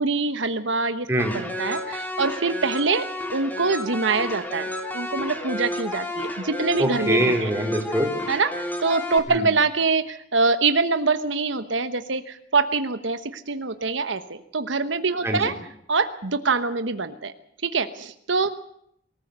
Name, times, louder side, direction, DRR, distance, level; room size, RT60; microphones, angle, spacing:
voice 1, 0.0-1.1 1.3-7.5 8.3-15.5 15.9-17.3 17.6-18.5, right 4 dB, 75° right, 10 dB, 1.2 m, -24 dB
sound 1, 1.2-9.2, left 1 dB, 10° left, 3.1 m, -32 dB
voice 2, 6.8-8.1 9.3-9.4 15.2-15.5, right 1 dB, 15° right, 2 dB, 4.1 m, -23 dB
24.0 x 15.0 x 8.2 m, 0.73 s
head